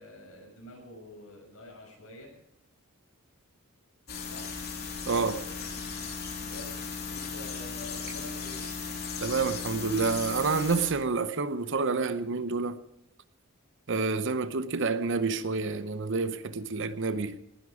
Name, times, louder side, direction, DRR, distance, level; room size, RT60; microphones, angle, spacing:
voice 1, 0.0-2.3 4.3-4.5 6.4-8.7, left 1 dB, 80° left, 6.5 m, -47 dB
sound 1, 4.1-10.9, left 5 dB, 45° left, 3.1 m, -37 dB
voice 2, 5.1-5.4 9.2-12.8 13.9-17.4, right 4 dB, 60° right, 0.8 m, -28 dB
19.0 x 11.5 x 4.9 m
head